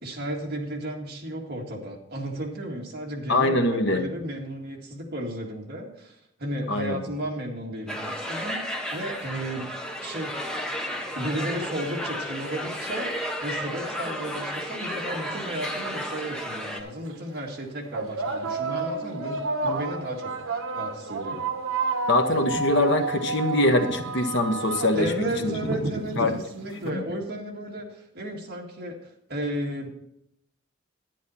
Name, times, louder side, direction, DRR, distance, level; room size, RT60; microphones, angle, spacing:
voice 1, 0.0-9.7 10.0-10.4 11.1-13.1 13.4-21.5 24.9-29.9, right 1 dB, 50° right, 0 dB, 1.9 m, -34 dB
voice 2, 3.3-4.0 6.7-7.0 22.1-25.1 25.4-25.5 26.2-26.3 26.7-27.0, left 2 dB, 55° left, 6 dB, 1.1 m, -23 dB
sound 1, 7.9-16.8, equal, 5° left, 0.9 m, -33 dB
sound 2, 15.9-16.0 16.9-17.1 17.9-26.8, right 3 dB, 80° right, 1.0 m, -30 dB
10.5 x 10.0 x 4.2 m, 0.76 s
head